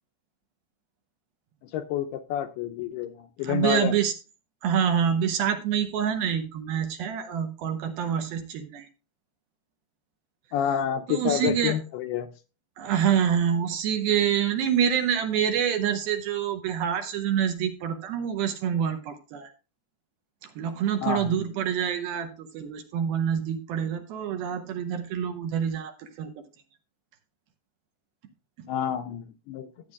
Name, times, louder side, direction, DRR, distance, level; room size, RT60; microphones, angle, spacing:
voice 1, 1.6-4.0 10.5-12.3 21.0-21.5 28.7-29.7, left 9 dB, 80° left, 7 dB, 2.4 m, -29 dB
voice 2, 3.4-4.1 4.6-8.9 11.1-11.8 12.8-19.5 20.6-26.3, right 8 dB, 75° right, 6 dB, 2.4 m, -26 dB
14.0 x 9.0 x 2.3 m, 0.31 s
omnidirectional pair, 5.0 m